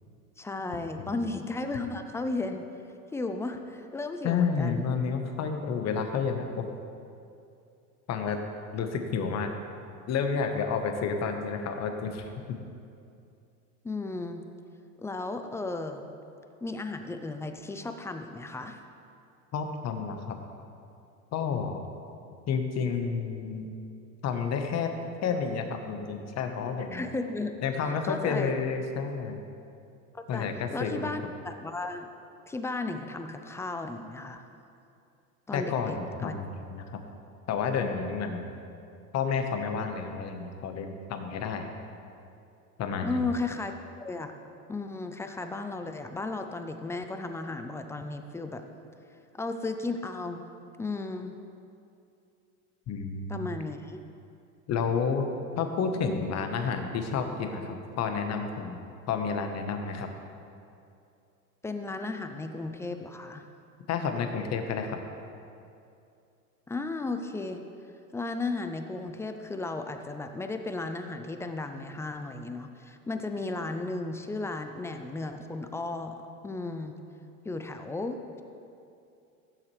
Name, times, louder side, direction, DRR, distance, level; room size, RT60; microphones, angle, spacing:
voice 1, 0.4-2.7 3.1-4.9 13.8-14.4 15.0-16.1 16.6-18.8 26.9-27.5 28.0-28.5 30.1-32.1 32.5-34.4 35.5-36.0 36.2-36.3 43.0-44.3 44.7-48.7 49.3-50.4 50.8-51.3 53.3-54.0 61.6-63.4 66.7-67.6 68.1-77.0 77.4-78.4, left 3 dB, 5° left, 7 dB, 0.3 m, -34 dB
voice 2, 4.2-6.7 8.1-8.4 8.7-9.5 10.1-12.3 19.5-20.4 21.3-21.8 22.5-23.7 24.2-24.9 25.2-27.0 27.6-29.4 30.3-31.1 35.5-36.8 37.5-38.5 39.1-41.7 42.8-43.2 52.9-53.5 54.7-55.3 55.6-58.8 59.1-60.1 63.9-65.0, left 6 dB, 40° left, 6 dB, 1.1 m, -30 dB
16.0 x 7.3 x 3.2 m, 2.6 s
hypercardioid pair, 100°, 42 cm